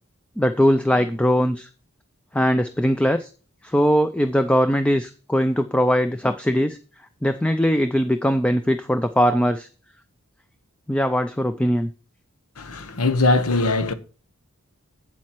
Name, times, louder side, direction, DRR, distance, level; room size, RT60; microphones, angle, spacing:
voice 1, 0.4-1.7 2.3-3.3 3.6-6.8 7.2-9.7 10.9-11.9, equal, 5° left, 0.4 m, -20 dB
voice 2, 12.6-13.9, left 2 dB, 90° left, 1.0 m, -21 dB
8.5 x 7.5 x 4.4 m
head